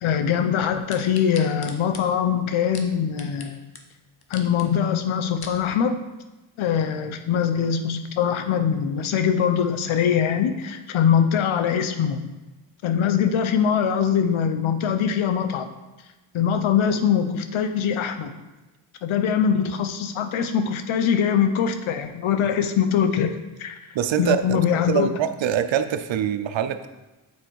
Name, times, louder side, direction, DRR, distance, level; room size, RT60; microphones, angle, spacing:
voice 1, 0.0-3.6 4.3-5.9 6.6-12.2 12.8-15.7 16.3-18.3 19.0-23.3 23.6-23.8 24.2-25.1, left 8 dB, 85° left, 8 dB, 0.8 m, -22 dB
sound 1, 0.9-3.5 3.7-3.8 4.2-4.7 5.1-5.6 6.2-6.3, left 5 dB, 50° left, 1.0 m, -40 dB
voice 2, 23.9-26.9, right 9 dB, 70° right, 10 dB, 0.7 m, -24 dB
7.3 x 4.4 x 4.7 m, 1.1 s
cardioid pair, 70°, 47 cm